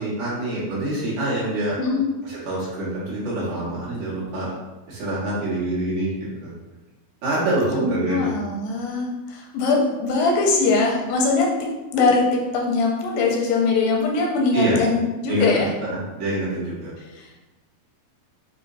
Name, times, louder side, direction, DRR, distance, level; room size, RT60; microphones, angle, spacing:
voice 1, 0.0-1.8 2.2-4.5 4.9-6.1 6.4-6.5 7.2-8.3 14.5-14.8 15.3-16.9, right 1 dB, 60° right, -8 dB, 2.5 m, -25 dB
voice 2, 8.1-15.7, left 3 dB, 85° left, 0 dB, 2.4 m, -21 dB
6.3 x 2.6 x 2.6 m, 1.1 s
omnidirectional pair, 4.2 m